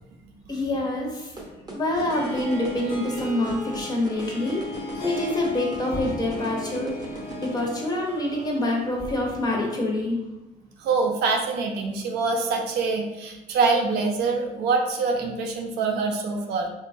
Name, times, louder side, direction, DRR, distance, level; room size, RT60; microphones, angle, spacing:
voice 1, 0.5-1.3 1.7-4.6 5.0-6.9 7.4-10.2, left 1 dB, 25° left, -1 dB, 0.6 m, -26 dB
sound 1, 1.4-7.6, right 2 dB, 25° right, 0.6 m, -38 dB
Harp, 2.1-9.8, left 2 dB, 65° left, 0.8 m, -36 dB
voice 2, 10.8-16.7, right 4 dB, 80° right, 2 dB, 0.5 m, -25 dB
2.9 x 2.2 x 2.5 m, 1.0 s
cardioid pair, 110°, 17 cm